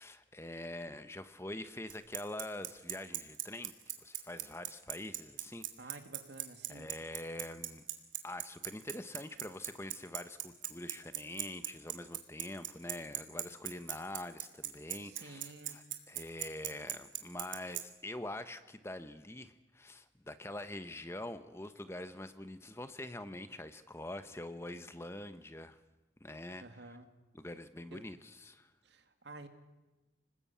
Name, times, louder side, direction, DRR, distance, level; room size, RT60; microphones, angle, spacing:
voice 1, 0.0-6.0 6.7-7.8 8.2-25.8 26.2-27.0 27.3-28.7, left 1 dB, 15° left, 11 dB, 0.9 m, -45 dB
Bicycle, 1.9-17.8, right 14 dB, 85° right, 2.6 m, -37 dB
voice 2, 5.8-6.9 15.0-15.8 26.6-27.1 27.9-28.0 28.8-29.5, right 2 dB, 65° right, 7 dB, 2.3 m, -51 dB
26.0 x 20.0 x 8.6 m, 1.1 s
head